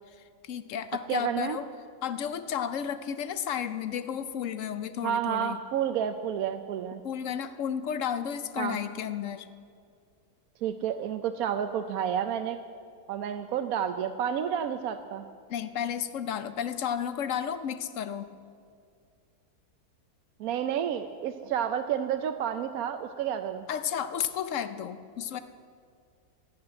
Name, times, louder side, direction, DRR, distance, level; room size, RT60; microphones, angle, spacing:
voice 1, 0.4-1.7 2.0-5.6 7.0-9.5 15.5-18.3 23.7-25.4, left 8 dB, 60° left, 12 dB, 1.0 m, -32 dB
voice 2, 1.1-1.6 5.0-7.0 8.6-8.8 10.6-12.6 13.1-15.2 20.4-23.7, right 9 dB, 70° right, 8 dB, 1.0 m, -30 dB
12.0 x 11.5 x 8.8 m, 2.2 s
omnidirectional pair, 1.7 m